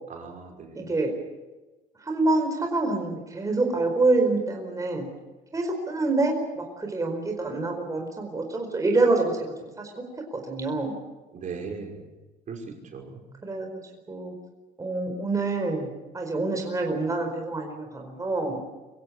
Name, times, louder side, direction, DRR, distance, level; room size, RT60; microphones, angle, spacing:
voice 1, 0.1-0.9 11.3-12.0 12.5-13.2, right 5 dB, 50° right, 2 dB, 5.6 m, -38 dB
voice 2, 0.7-1.1 2.0-5.1 5.5-10.0 10.3-11.0 13.4-13.7 14.1-14.3 14.8-18.6, right 2 dB, 20° right, 3 dB, 4.7 m, -26 dB
25.0 x 16.5 x 8.8 m, 1.1 s
cardioid pair, 110°, 17 cm